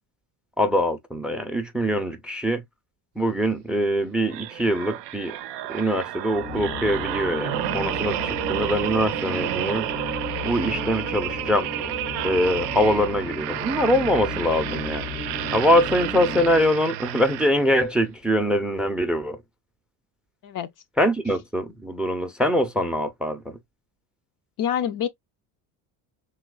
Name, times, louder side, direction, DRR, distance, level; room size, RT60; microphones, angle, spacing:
voice 1, 0.6-2.6 3.2-5.4 5.7-9.9 10.4-11.7 12.2-15.1 15.5-19.4 21.0-23.6, equal, ahead, 0.5 m, -23 dB
sound 1, 4.3-17.9 18.4-18.6, right 14 dB, 65° right, 0.5 m, -31 dB
sound 2, 6.3-16.7, left 4 dB, 90° left, 1.4 m, -35 dB
voice 2, 24.6-25.1, left 9 dB, 45° left, 0.5 m, -26 dB
3.1 x 3.1 x 2.2 m
supercardioid pair, 105°, 45 cm